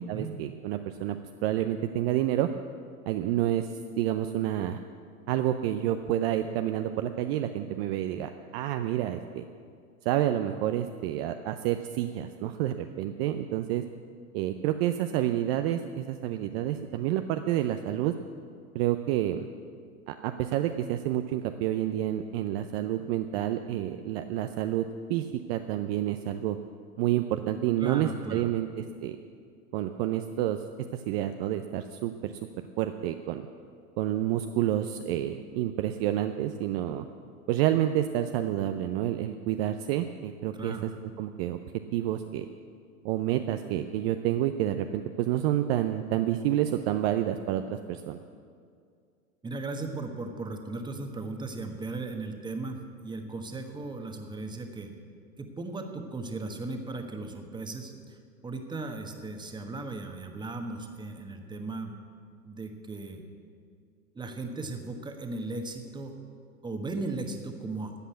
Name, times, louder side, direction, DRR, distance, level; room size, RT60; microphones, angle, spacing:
voice 1, 0.1-2.5 3.1-3.7 4.0-4.8 5.3-9.4 10.0-13.8 14.3-18.1 18.7-19.5 20.1-26.6 27.0-29.2 29.7-30.6 30.9-32.3 32.8-33.5 34.0-37.1 37.5-40.9 41.2-41.6 41.9-42.5 43.0-48.2, right 12 dB, 45° right, 8 dB, 0.6 m, -29 dB
voice 2, 27.8-28.5 40.5-40.9 49.4-54.9 55.4-58.2 58.4-62.0 62.4-63.2 64.1-66.1 66.6-67.9, right 3 dB, 10° right, 5 dB, 1.3 m, -37 dB
13.5 x 8.3 x 8.2 m, 2.2 s
hypercardioid pair, 110°, 44 cm